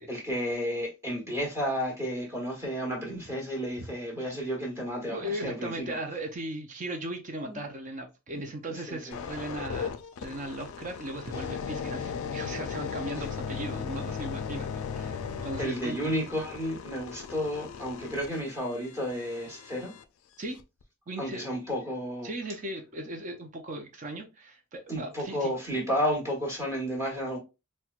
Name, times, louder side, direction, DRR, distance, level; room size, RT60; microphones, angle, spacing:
voice 1, 0.0-6.0 7.4-7.6 8.7-9.2 13.1-13.3 15.6-19.9 21.2-22.3 24.9-27.4, equal, 10° right, 1.2 m, -32 dB
voice 2, 5.1-9.9 10.2-16.1 20.4-20.6 21.1-21.4 22.2-25.5, right 1 dB, 35° right, 0.5 m, -37 dB
sound 1, 9.1-20.0 20.6-20.8, left 6 dB, 65° left, 0.3 m, -37 dB
4.2 x 2.2 x 2.3 m
head